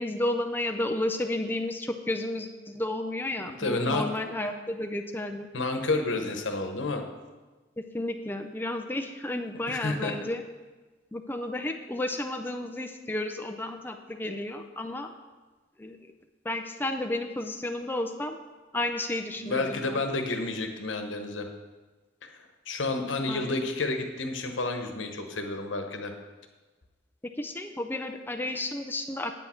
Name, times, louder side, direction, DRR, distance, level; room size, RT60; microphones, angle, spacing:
voice 1, 0.0-5.5 7.8-10.4 11.1-15.1 15.8-16.0 16.4-18.4 18.7-20.0 23.3-23.6 27.2-29.3, left 1 dB, 10° left, 4 dB, 0.4 m, -32 dB
voice 2, 3.4-4.1 5.5-7.0 9.7-10.1 19.4-21.5 22.2-22.3 22.7-26.1, left 2 dB, 80° left, 5 dB, 1.1 m, -30 dB
8.7 x 8.4 x 4.4 m, 1.3 s
head